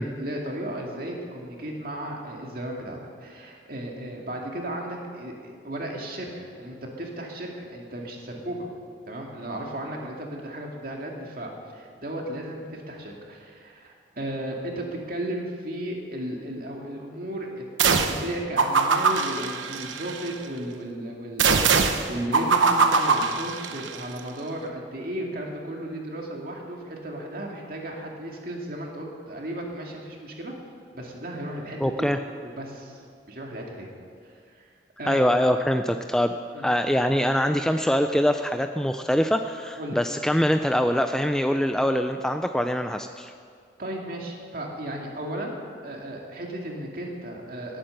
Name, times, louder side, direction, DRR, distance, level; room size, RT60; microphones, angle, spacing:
voice 1, 0.0-8.7 9.1-30.5 30.9-32.1 32.4-33.0 33.3-33.9 34.2-34.7 35.0-35.2 36.5-36.7 39.8-40.0 43.8-45.5 45.8-47.8, right 1 dB, 50° right, 0 dB, 2.3 m, -35 dB
sound 1, 17.8-18.3 18.6-20.3 21.4-24.0, right 5 dB, 85° right, 0.9 m, -22 dB
voice 2, 31.8-32.2 35.1-43.3, equal, 5° left, 7 dB, 0.3 m, -24 dB
18.0 x 8.8 x 6.7 m, 2.1 s
head